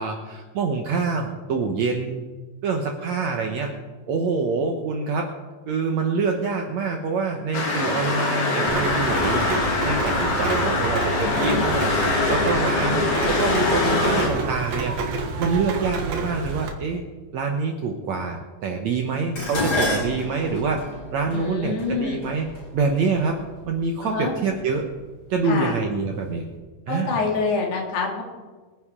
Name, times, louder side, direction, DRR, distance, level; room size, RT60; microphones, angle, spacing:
voice 1, 0.0-2.3 2.6-3.7 4.1-5.3 5.7-11.9 12.3-17.0 17.3-20.8 21.1-22.5 22.7-23.4 23.7-24.9 25.3-26.4 26.9-27.2, right 4 dB, 80° right, 2 dB, 1.5 m, -26 dB
sound 1, 7.5-14.3, left 3 dB, 55° left, 3.7 m, -23 dB
Rain, 8.7-16.7, right 4 dB, 60° right, 2.1 m, -29 dB
voice 2, 11.2-11.6 21.3-22.2 24.0-24.3 25.5-25.8 26.9-28.2, left 4 dB, 85° left, 0 dB, 4.3 m, -26 dB
Dishes pots and pans, 19.4-23.7 24.6-25.0 25.4-26.2 26.5-26.6, left 1 dB, 30° left, 4.4 m, -30 dB
24.0 x 9.7 x 3.7 m, 1.3 s
omnidirectional pair, 4.6 m